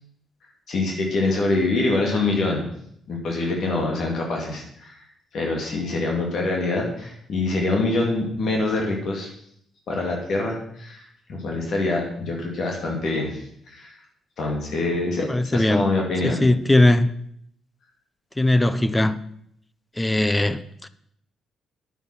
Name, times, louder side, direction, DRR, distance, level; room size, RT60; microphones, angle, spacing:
voice 1, 0.7-2.6 3.1-5.0 5.3-9.3 9.9-13.9 14.4-16.4, left 2 dB, 60° left, 2.8 m, -25 dB
voice 2, 15.3-15.9 16.2-17.1 18.4-19.2 20.0-20.9, left 1 dB, 15° left, 0.6 m, -19 dB
10.0 x 9.3 x 6.0 m
cardioid pair, 90°, 0 cm